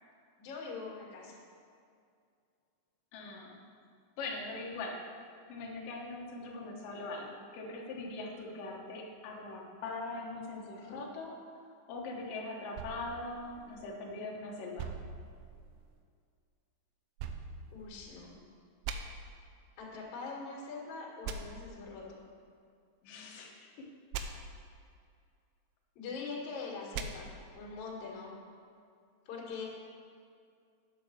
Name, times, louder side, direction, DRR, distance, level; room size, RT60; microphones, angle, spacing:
voice 1, 0.4-1.4 17.7-18.4 19.8-22.2 26.0-28.4 29.3-29.7, left 4 dB, 55° left, -5 dB, 3.1 m, -43 dB
voice 2, 3.1-3.6 4.2-5.0 5.5-11.4 11.9-14.9 23.0-23.9, left 2 dB, 75° left, -1 dB, 2.0 m, -41 dB
sound 1, 12.8-14.2 14.8-16.0 17.2-18.3 18.8-19.0 21.2-21.4 24.1-24.3 26.9-27.1, right 7 dB, 85° right, 3.3 m, -42 dB
9.5 x 7.7 x 6.4 m, 2.3 s
omnidirectional pair, 5.8 m